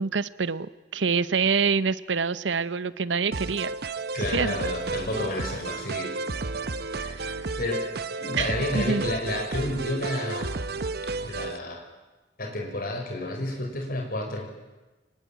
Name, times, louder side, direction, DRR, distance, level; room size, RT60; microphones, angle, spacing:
voice 1, 0.0-3.7 4.3-4.7 7.2-7.4 8.4-9.1, right 5 dB, 90° right, 16 dB, 0.8 m, -26 dB
sound 1, 3.3-11.6, right 3 dB, 60° right, 1.0 m, -32 dB
voice 2, 4.1-6.1 6.9-7.2 7.6-7.9 8.2-10.6 11.2-11.8 12.4-14.5, left 1 dB, 55° left, 2 dB, 5.6 m, -31 dB
24.5 x 19.5 x 9.1 m, 1.2 s
head